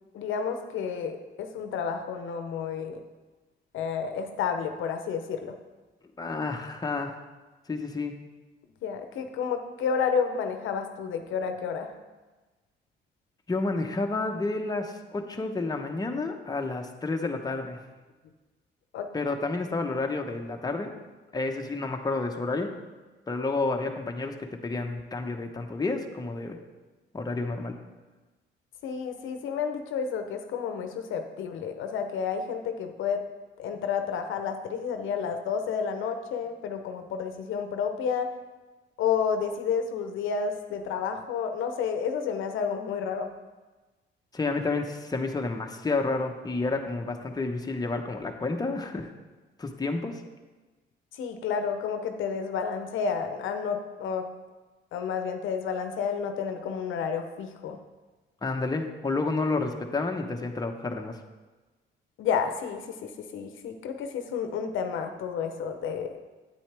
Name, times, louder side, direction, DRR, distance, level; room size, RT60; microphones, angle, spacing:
voice 1, 0.1-3.0 3.7-5.6 8.8-11.9 18.9-19.1 28.8-33.2 33.6-38.3 39.0-43.3 51.2-54.3 54.9-57.8 62.2-66.1, left 6 dB, 80° left, 6 dB, 0.8 m, -30 dB
voice 2, 6.2-7.1 7.7-8.1 13.5-17.8 19.1-20.9 21.3-22.7 23.3-26.6 27.1-27.8 44.3-49.1 49.6-50.2 58.4-61.2, left 3 dB, 20° left, 3 dB, 0.9 m, -30 dB
8.9 x 8.7 x 3.4 m, 1.2 s
cardioid pair, 90°, 20 cm